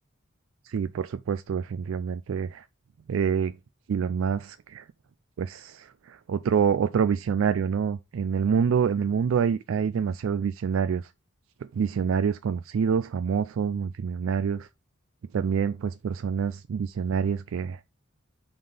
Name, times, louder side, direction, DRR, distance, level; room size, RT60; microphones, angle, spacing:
voice 1, 0.7-2.6 3.1-3.6 3.9-4.9 5.4-11.1 11.7-14.7 15.3-17.8, right 7 dB, 65° right, 0.3 m, -26 dB
5.1 x 3.9 x 5.4 m
head